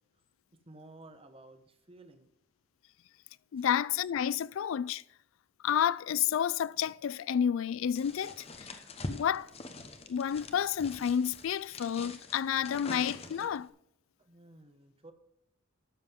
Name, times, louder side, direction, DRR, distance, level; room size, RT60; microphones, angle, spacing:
voice 1, 0.7-2.3 3.6-3.7 14.2-15.1, right 2 dB, 30° right, 1.1 m, -54 dB
voice 2, 3.5-5.0 5.6-8.7 9.1-9.5 10.1-13.7, left 8 dB, 75° left, 0.3 m, -30 dB
sound 1, 7.9-13.7, left 2 dB, 30° left, 1.0 m, -44 dB
12.5 x 7.5 x 3.6 m
head